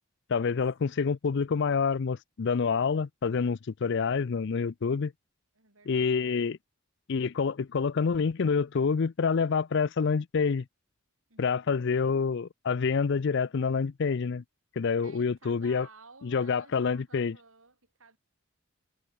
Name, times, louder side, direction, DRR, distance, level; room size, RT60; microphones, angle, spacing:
voice 1, 0.3-5.1 5.9-6.6 7.1-10.6 11.4-14.4 14.8-15.9 16.2-17.3, left 5 dB, 55° left, 0.5 m, -27 dB
voice 2, 5.5-6.5 11.3-12.1 15.0-18.2, right 4 dB, 75° right, 5.8 m, -56 dB
head